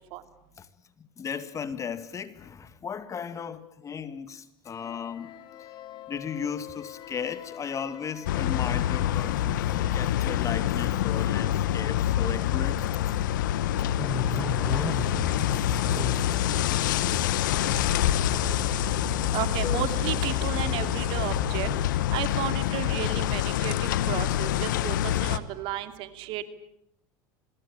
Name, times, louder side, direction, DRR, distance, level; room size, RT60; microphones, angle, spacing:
voice 1, 1.0-5.3 6.1-13.1 14.3-14.4 14.7-15.0 15.5-16.2 17.1-17.2 19.0-19.2 19.6-19.8, left 7 dB, 30° left, 2.0 m, -36 dB
sound 1, 4.6-10.5, left 11 dB, 50° left, 2.4 m, -46 dB
sound 2, 8.3-25.4, left 12 dB, 80° left, 1.2 m, -26 dB
sound 3, 14.0-21.9, left 2 dB, 10° left, 2.3 m, -35 dB
voice 2, 19.3-21.7 22.1-26.4, right 13 dB, 60° right, 2.5 m, -33 dB
26.0 x 21.0 x 8.9 m
hypercardioid pair, 90°, 10 cm